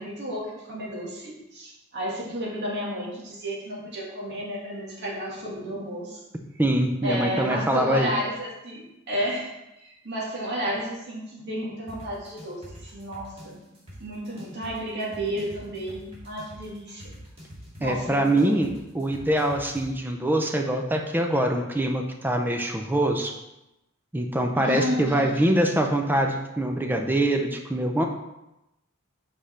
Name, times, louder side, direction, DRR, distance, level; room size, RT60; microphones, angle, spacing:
voice 1, 0.0-6.2 7.0-13.6 14.0-17.1 17.8-18.6 24.6-25.9, equal, 55° right, -4 dB, 1.9 m, -32 dB
voice 2, 6.6-8.1 17.8-18.7 18.9-23.3 24.1-28.1, right 1 dB, 10° right, 3 dB, 0.5 m, -24 dB
sound 1, 11.9-19.9, equal, 30° right, 2.0 m, -45 dB
5.3 x 5.2 x 4.2 m, 0.92 s
head